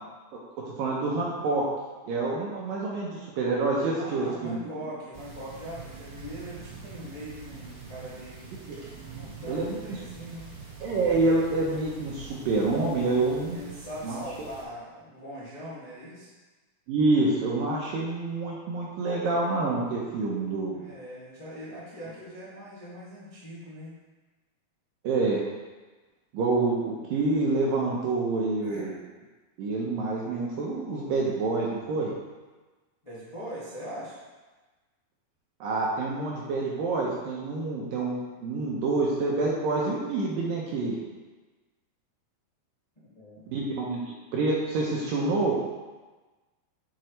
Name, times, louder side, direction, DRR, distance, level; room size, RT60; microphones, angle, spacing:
voice 1, 0.8-1.7 2.0-4.6 8.7-8.8 9.5-10.0 10.8-13.6 14.0-14.2 16.9-20.8 25.0-25.4 26.3-28.9 29.6-32.1 35.6-41.0 43.5-44.0 44.3-45.5, right 3 dB, 75° right, -3 dB, 2.2 m, -27 dB
voice 2, 3.9-8.5 8.9-10.5 13.5-16.3 20.7-24.0 28.6-28.9 33.0-34.2 42.9-43.5, equal, 40° left, -10 dB, 0.4 m, -41 dB
sound 1, 5.1-14.6, right 5 dB, 50° right, 1.4 m, -45 dB
9.0 x 6.0 x 3.2 m, 1.3 s
omnidirectional pair, 4.8 m